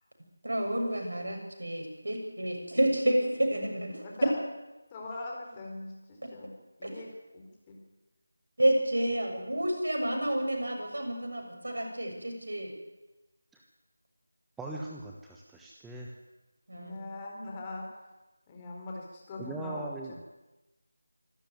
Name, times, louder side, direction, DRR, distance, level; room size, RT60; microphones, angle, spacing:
voice 1, 0.4-4.0 6.8-6.9 8.6-12.7 16.7-17.0, right 1 dB, 75° right, 2 dB, 7.2 m, -30 dB
voice 2, 4.0-4.3 4.9-6.5 6.8-7.8 16.7-18.1 18.5-19.9, left 2 dB, 20° left, -1 dB, 4.4 m, -42 dB
voice 3, 14.6-16.2 19.4-20.3, right 2 dB, 5° right, -2 dB, 1.2 m, -40 dB
26.0 x 13.0 x 9.5 m, 1.1 s
figure-of-eight pair, 165°, 0 cm